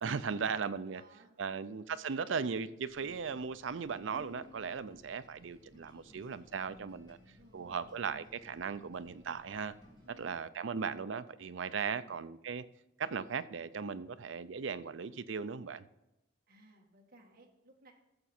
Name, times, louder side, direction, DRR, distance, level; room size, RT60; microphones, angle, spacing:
voice 1, 0.0-1.0 1.4-7.2 7.5-9.7 10.1-12.6 13.0-15.9, right 5 dB, 80° right, 0.5 m, -37 dB
voice 2, 0.9-1.7 7.2-8.0 10.0-10.4 12.0-12.2 16.5-17.9, right 1 dB, 50° right, 1.7 m, -61 dB
sound 1, 2.9-10.1, left 2 dB, 25° left, 2.7 m, -59 dB
14.0 x 6.9 x 4.3 m
head